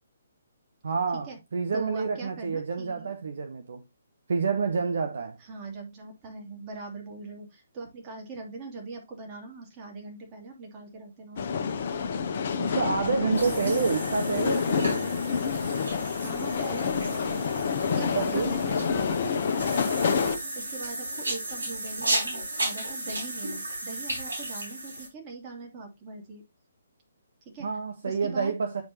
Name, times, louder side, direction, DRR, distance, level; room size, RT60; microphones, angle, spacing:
voice 1, 0.8-3.8 4.3-5.4 12.6-15.1 18.1-18.5 27.6-28.8, right 5 dB, 60° right, 0.9 m, -28 dB
voice 2, 1.7-3.1 5.4-11.6 12.7-13.0 13.5-13.9 16.2-17.6 17.9-26.4 27.4-27.7 28.0-28.5, right 3 dB, 25° right, 2.5 m, -42 dB
sound 1, 11.4-20.4, left 6 dB, 45° left, 0.9 m, -28 dB
sound 2, 13.3-25.1, right 1 dB, 75° right, 4.2 m, -35 dB
9.5 x 4.7 x 2.9 m
figure-of-eight pair, 135°, 0 cm